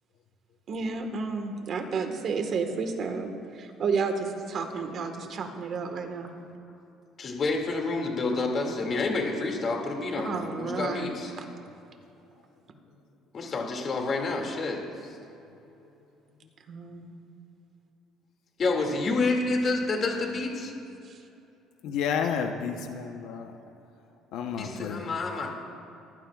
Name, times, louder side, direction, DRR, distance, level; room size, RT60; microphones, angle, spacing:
voice 1, 0.7-6.3 8.6-8.7 10.2-11.1 16.7-17.1 21.0-21.2, right 4 dB, 45° right, 5 dB, 1.5 m, -31 dB
voice 2, 7.2-11.3 13.3-14.8 18.6-20.7 24.6-25.5, left 3 dB, 35° left, 1 dB, 2.3 m, -28 dB
voice 3, 21.8-23.5 24.3-25.0, left 7 dB, 75° left, 4 dB, 0.9 m, -31 dB
23.0 x 15.0 x 2.4 m, 2.8 s
cardioid pair, 145°, 0 cm